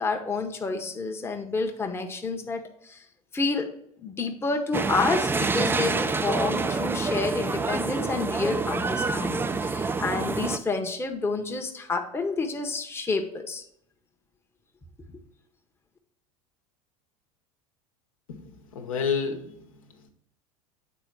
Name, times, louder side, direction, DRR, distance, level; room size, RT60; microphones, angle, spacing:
voice 1, 0.0-3.0 3.3-3.7 4.0-13.6, left 3 dB, 15° left, 3 dB, 0.9 m, -29 dB
sound 1, 4.7-10.6, right 4 dB, 10° right, 0.4 m, -27 dB
voice 2, 18.3-20.1, left 6 dB, 70° left, 3 dB, 1.0 m, -31 dB
8.1 x 4.1 x 4.5 m, 0.71 s
figure-of-eight pair, 80°, 18 cm